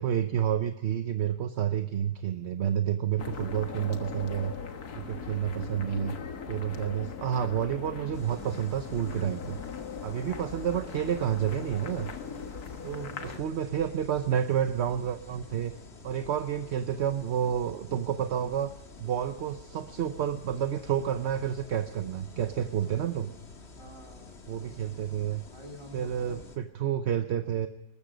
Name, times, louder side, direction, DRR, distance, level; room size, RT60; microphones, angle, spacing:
voice 1, 0.0-4.5 4.9-6.2 6.5-9.6 10.0-12.1 12.8-15.7 16.0-18.7 19.0-23.3 24.5-25.4 25.9-27.7, right 9 dB, 55° right, 9 dB, 0.9 m, -30 dB
sound 1, 3.2-13.4, left 6 dB, 70° left, 1.9 m, -40 dB
voice 2, 4.9-5.3 12.9-13.6 22.8-23.4 23.7-24.4 25.5-26.4, left 1 dB, 20° right, 3 dB, 3.5 m, -48 dB
sound 2, 8.1-26.6, left 3 dB, 45° left, 1.8 m, -49 dB
20.0 x 14.0 x 5.1 m, 0.84 s
omnidirectional pair, 1.7 m